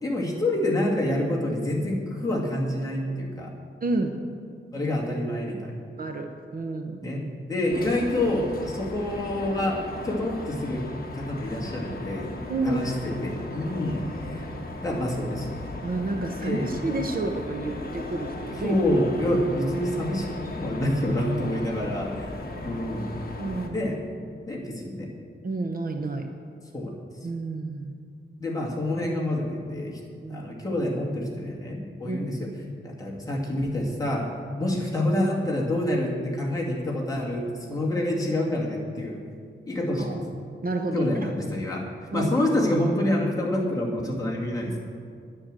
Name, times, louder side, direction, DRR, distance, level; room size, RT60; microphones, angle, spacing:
voice 1, 0.0-3.5 4.7-5.7 7.0-12.4 12.6-14.4 14.8-15.5 16.4-16.7 18.6-20.3 20.6-22.3 22.6-23.1 23.7-24.0 24.5-25.1 26.7-26.9 28.4-30.0 30.3-32.5 32.8-34.3 34.6-39.2 39.7-40.2 40.9-41.9 42.1-44.8, left 1 dB, 15° left, -3 dB, 2.2 m, -27 dB
voice 2, 3.8-4.1 6.0-7.2 12.5-12.8 15.8-18.8 19.3-19.4 23.4-23.9 25.4-26.3 27.2-27.9 30.2-30.5 32.1-32.2 34.6-34.7 40.0-40.3 40.6-41.3 42.1-42.3, right 2 dB, 45° right, 4 dB, 0.8 m, -30 dB
sound 1, 7.7-23.7, left 2 dB, 45° left, 1.3 m, -37 dB
10.5 x 9.9 x 7.6 m, 2.2 s
wide cardioid pair, 170°, 21 cm